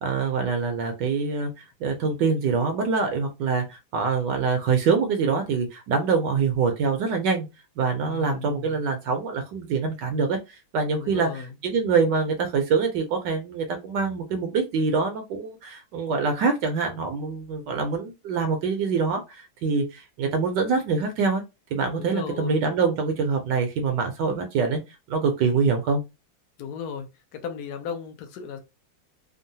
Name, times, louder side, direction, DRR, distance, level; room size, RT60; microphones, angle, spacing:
voice 1, 0.0-1.5 1.8-7.5 7.8-21.4 21.7-24.8 25.1-26.0, right 5 dB, 70° right, 1.1 m, -25 dB
voice 2, 8.0-8.7 11.0-11.4 21.9-22.6 26.6-27.1 27.3-28.6, left 6 dB, 70° left, 1.0 m, -35 dB
3.6 x 2.0 x 2.6 m
omnidirectional pair, 2.2 m